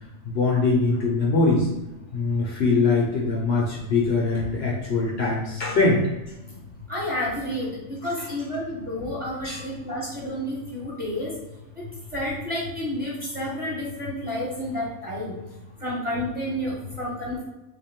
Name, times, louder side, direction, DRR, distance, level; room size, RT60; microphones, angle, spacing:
voice 1, 0.3-1.7 2.1-6.0 6.5-6.6 8.2-8.3 9.4-9.6, left 3 dB, 60° left, -3 dB, 0.9 m, -22 dB
voice 2, 6.9-11.3 11.7-11.8 12.1-15.4 15.8-17.4, left 1 dB, 5° right, -7 dB, 1.3 m, -30 dB
3.5 x 2.4 x 3.6 m, 1.0 s
omnidirectional pair, 1.3 m